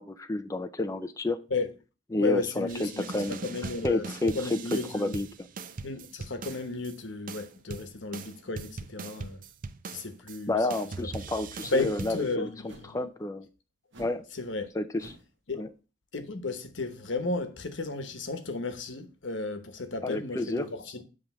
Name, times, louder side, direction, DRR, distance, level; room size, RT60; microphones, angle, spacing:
voice 1, 0.0-1.4 2.1-3.4 3.8-5.3 10.5-13.5 14.0-14.2 14.7-15.2 15.5-15.7 20.0-20.7, left 2 dB, 15° left, 0.4 m, -30 dB
voice 2, 2.2-5.2 5.8-9.4 9.9-10.6 11.0-11.1 11.7-13.0 14.3-14.7 15.5-15.6 16.1-21.0, left 3 dB, 90° left, 1.1 m, -34 dB
sound 1, 2.7-6.9 7.3-10.4 10.7-12.4, right 4 dB, 50° right, 0.5 m, -41 dB
sound 2, 11.7-12.1 12.7-13.0 13.9-14.2 14.5-14.7 15.0-15.3, right 1 dB, 90° right, 1.2 m, -48 dB
7.6 x 3.4 x 5.9 m
head